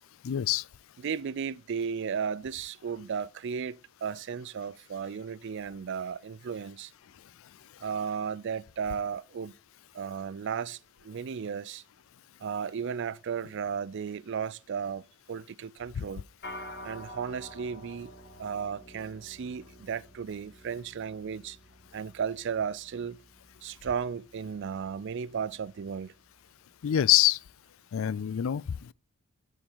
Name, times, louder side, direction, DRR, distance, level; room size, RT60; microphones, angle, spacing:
voice 1, 0.2-0.7 16.0-16.1 26.8-27.4 27.9-28.9, left 12 dB, 70° left, 0.4 m, -25 dB
voice 2, 1.0-6.9 7.8-9.5 9.9-11.8 12.4-16.2 16.8-18.1 18.4-21.6 21.9-23.2 23.6-26.1, right 6 dB, 60° right, 0.4 m, -35 dB
sound 1, 16.4-26.0, left 1 dB, 50° left, 2.6 m, -49 dB
12.0 x 5.2 x 5.5 m
head